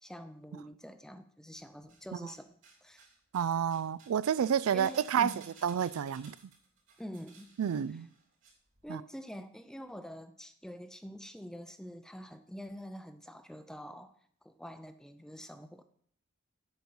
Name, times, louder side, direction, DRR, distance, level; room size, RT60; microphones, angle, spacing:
voice 1, 0.0-2.5 2.8-3.0 4.7-5.4 7.0-7.5 8.8-14.1 14.4-15.8, equal, 5° left, 0.5 m, -46 dB
sound 1, 1.6-2.4 2.6-8.5 8.8-8.9, right 4 dB, 60° right, 3.3 m, -57 dB
voice 2, 3.3-5.3 5.6-6.4 7.6-8.1 8.9-9.0, right 8 dB, 75° right, 0.3 m, -29 dB
8.3 x 5.4 x 7.7 m
head